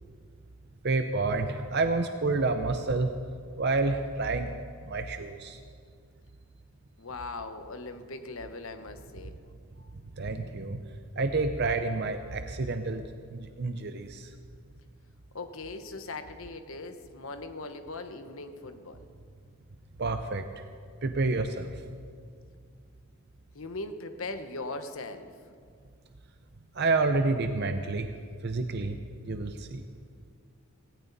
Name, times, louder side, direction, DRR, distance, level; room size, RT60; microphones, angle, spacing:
voice 1, 0.8-3.1 3.6-5.6 9.8-9.9 10.2-10.8 11.2-14.3 20.0-20.5 21.0-21.8 26.7-28.1 28.4-29.0 29.2-29.8, right 3 dB, 50° right, 7 dB, 0.7 m, -29 dB
voice 2, 7.0-9.3 15.3-19.1 23.5-25.3, left 3 dB, 65° left, 8 dB, 1.1 m, -39 dB
18.0 x 17.5 x 4.1 m, 2.2 s
head